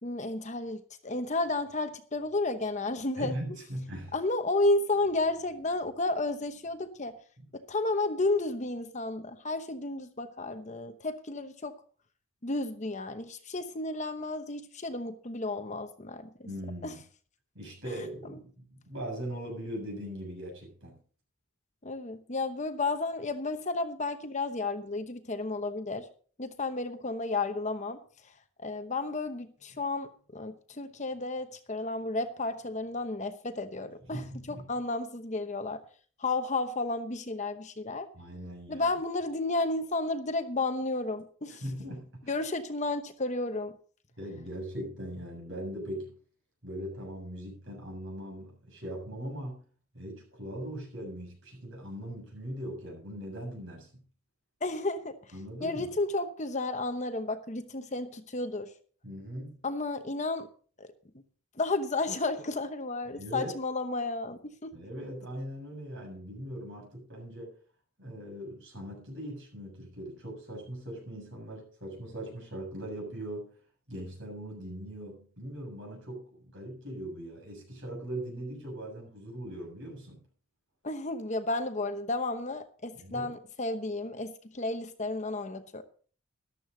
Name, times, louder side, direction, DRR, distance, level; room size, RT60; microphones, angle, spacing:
voice 1, 0.0-3.4 4.1-7.1 7.7-11.7 12.4-16.3 16.8-16.9 21.8-26.1 26.4-28.0 28.6-35.8 36.2-38.1 38.7-41.6 42.3-43.7 54.6-55.1 55.6-58.7 59.6-60.5 60.8-60.9 61.6-64.7 80.8-85.8, left 2 dB, 30° left, 8 dB, 0.9 m, -32 dB
voice 2, 3.2-4.2 7.4-7.5 16.4-17.0 17.5-21.0 34.1-34.7 38.1-38.9 41.5-42.3 44.2-46.1 46.6-49.6 49.9-53.9 55.3-55.8 59.0-59.6 63.1-63.5 64.7-67.5 68.0-73.5 73.9-80.2 82.9-83.3, right 1 dB, 55° right, 0 dB, 7.4 m, -40 dB
14.0 x 12.0 x 3.9 m, 0.43 s
head